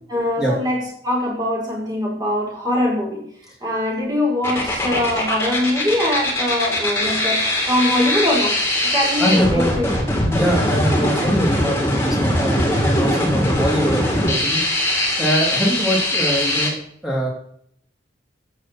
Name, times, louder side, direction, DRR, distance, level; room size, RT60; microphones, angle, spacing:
voice 1, 0.1-3.2 3.6-8.6 8.8-9.9, left 1 dB, 20° right, -3 dB, 4.4 m, -22 dB
sound 1, 4.4-16.7, left 1 dB, 15° left, 2.7 m, -21 dB
voice 2, 9.2-9.9 10.3-14.6 15.2-16.8 17.0-17.3, equal, 5° right, -3 dB, 3.1 m, -22 dB
14.0 x 8.0 x 4.4 m, 0.66 s
head